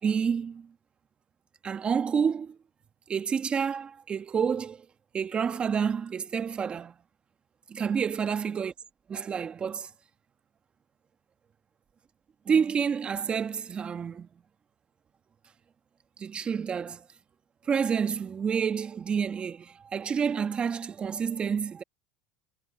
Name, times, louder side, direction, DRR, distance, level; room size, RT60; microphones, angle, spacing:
voice 1, 0.0-0.7 1.6-2.6 3.1-4.9 5.1-6.9 7.7-8.7 9.1-9.9 12.5-14.3 16.2-17.1 17.7-21.8, right 6 dB, 30° right, 1.8 m, -29 dB
supercardioid pair, 110°, 4 cm